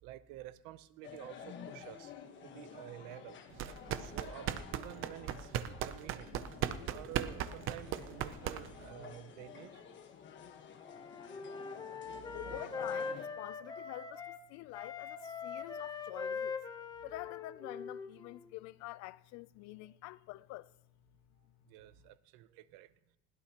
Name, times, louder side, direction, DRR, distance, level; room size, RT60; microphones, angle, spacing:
voice 1, 0.0-2.1 2.4-3.4 3.9-6.4 6.9-9.8 19.8-20.0 21.7-22.9, right 14 dB, 80° right, 0.8 m, -50 dB
sound 1, 1.0-13.3, left 7 dB, 35° left, 1.3 m, -51 dB
sound 2, 3.5-8.9, right 10 dB, 40° right, 0.6 m, -37 dB
Wind instrument woodwind instrument, 10.9-14.4 14.7-18.5, left 5 dB, 15° left, 0.7 m, -42 dB
voice 2, 12.3-16.6 17.0-20.7, left 18 dB, 60° left, 0.5 m, -47 dB
20.0 x 16.5 x 2.9 m
cardioid pair, 170°, 32 cm